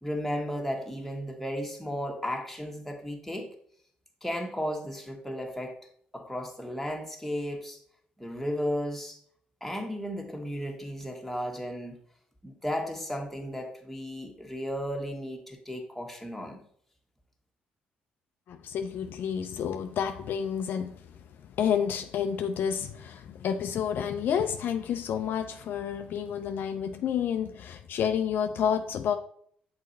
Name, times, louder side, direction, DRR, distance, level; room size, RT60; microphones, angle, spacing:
voice 1, 0.0-3.5 4.2-5.8 6.1-7.8 8.2-9.2 9.6-12.0 12.4-16.6, equal, 5° left, 1 dB, 1.4 m, -34 dB
voice 2, 18.5-20.9 21.6-29.2, left 8 dB, 65° left, 7 dB, 0.5 m, -29 dB
6.5 x 4.2 x 4.1 m, 0.63 s
supercardioid pair, 65°, 4 cm